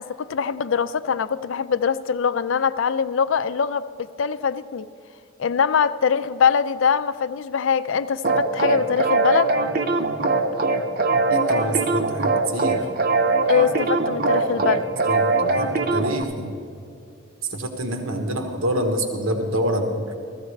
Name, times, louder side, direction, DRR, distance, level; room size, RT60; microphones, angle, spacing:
voice 1, 0.0-4.9 5.4-9.5 13.5-14.9, left 6 dB, 70° left, 13 dB, 0.4 m, -23 dB
sound 1, 8.2-16.2, right 3 dB, 45° right, 0.7 m, -22 dB
voice 2, 11.1-12.8 14.6-14.7 15.1-16.5 17.5-20.0, right 1 dB, 90° right, 4 dB, 1.1 m, -26 dB
16.0 x 14.0 x 3.2 m, 2.7 s
head